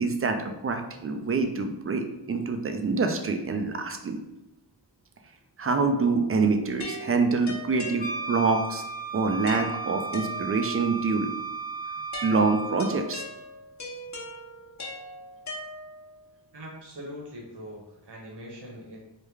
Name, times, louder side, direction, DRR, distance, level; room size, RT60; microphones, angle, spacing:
voice 1, 0.0-4.2 5.6-8.8 9.1-11.3 12.2-13.2, right 4 dB, 30° right, 6 dB, 0.4 m, -26 dB
sound 1, 6.8-8.6 9.5-10.9 12.1-16.2, left 1 dB, 35° left, 0.9 m, -40 dB
Wind instrument woodwind instrument, 8.0-13.1, right 5 dB, 20° left, 0.6 m, -35 dB
voice 2, 16.5-19.0, equal, 60° right, -2 dB, 1.2 m, -42 dB
3.3 x 2.2 x 3.4 m, 0.93 s
cardioid pair, 50°, 46 cm